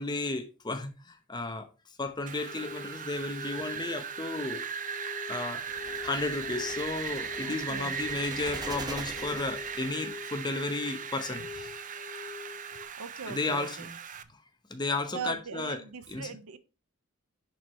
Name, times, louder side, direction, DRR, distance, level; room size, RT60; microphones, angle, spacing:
voice 1, 0.0-4.6 5.3-5.6 6.0-11.8 13.3-13.9 14.7-15.8 16.1-16.3, left 3 dB, 20° left, 0.9 m, -33 dB
Wind, 2.3-14.2, right 7 dB, 35° right, 0.6 m, -38 dB
sound 1, 2.4-12.9, left 6 dB, 70° left, 3.3 m, -45 dB
sound 2, 5.6-10.1, right 2 dB, 20° right, 0.9 m, -44 dB
voice 2, 7.4-8.0 11.4-11.5 13.0-14.0 15.1-16.6, right 5 dB, 85° right, 0.8 m, -40 dB
10.5 x 4.7 x 3.1 m
head